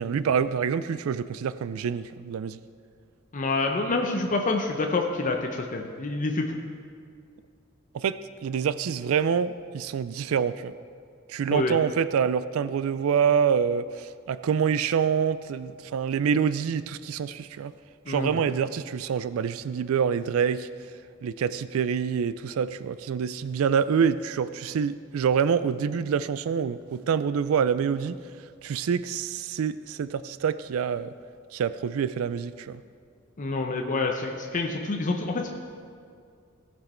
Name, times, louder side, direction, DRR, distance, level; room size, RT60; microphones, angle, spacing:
voice 1, 0.0-2.6 7.9-10.7 11.3-17.7 18.1-20.7 21.2-28.2 28.6-31.1 31.5-32.8, right 7 dB, 80° right, 15 dB, 0.3 m, -26 dB
voice 2, 3.3-6.5 11.5-11.8 18.1-18.4 33.4-35.5, left 3 dB, 40° left, 2 dB, 0.7 m, -27 dB
17.0 x 6.1 x 4.4 m, 2.2 s
head